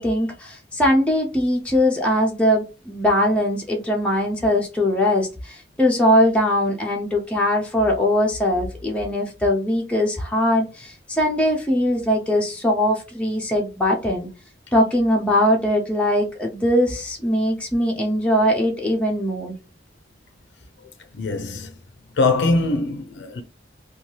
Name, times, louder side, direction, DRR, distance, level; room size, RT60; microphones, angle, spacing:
voice 1, 0.0-14.3 14.7-19.5, left 1 dB, 5° left, 0.5 m, -21 dB
voice 2, 21.2-21.7 22.2-23.4, left 3 dB, 75° left, 0.4 m, -22 dB
2.7 x 2.2 x 3.1 m
head